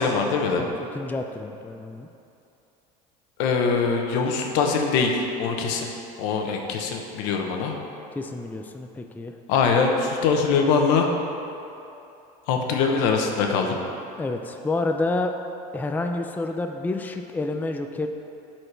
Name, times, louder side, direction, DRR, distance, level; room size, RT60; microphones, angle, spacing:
voice 1, 0.0-0.7 3.4-5.9 6.2-7.8 9.5-11.1 12.5-13.8, left 5 dB, 75° left, 2 dB, 0.9 m, -23 dB
voice 2, 0.6-2.1 8.2-9.3 14.2-15.3 15.7-18.1, left 2 dB, 10° left, 5 dB, 0.4 m, -29 dB
12.0 x 4.4 x 3.3 m, 2.8 s
supercardioid pair, 100°, 19 cm